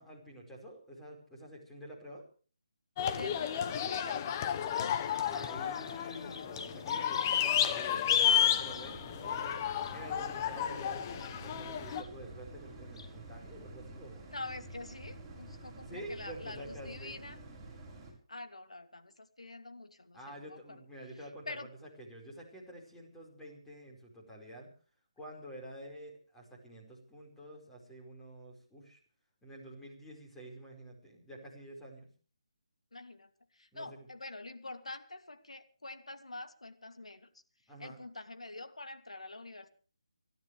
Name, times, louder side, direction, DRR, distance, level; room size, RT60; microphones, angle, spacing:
voice 1, 0.0-2.3 5.0-14.2 15.8-17.2 20.1-21.6 22.0-24.7 25.2-29.0 29.4-32.1 33.7-33.9 37.7-38.0, equal, 5° left, -1 dB, 4.9 m, -48 dB
sound 1, 3.0-12.0, left 9 dB, 25° left, 1.2 m, -32 dB
voice 2, 3.1-5.5 14.3-17.4 18.3-20.8 21.5-21.7 32.9-37.3 37.8-39.7, left 2 dB, 85° left, 8 dB, 2.8 m, -46 dB
Bird vocalization bird call bird song, 4.5-13.5, left 4 dB, 60° left, 2.5 m, -51 dB
sound 2, 7.3-18.1, right 2 dB, 15° right, 6.9 m, -50 dB
29.5 x 12.5 x 3.4 m, 0.39 s
figure-of-eight pair, 155°, 3 cm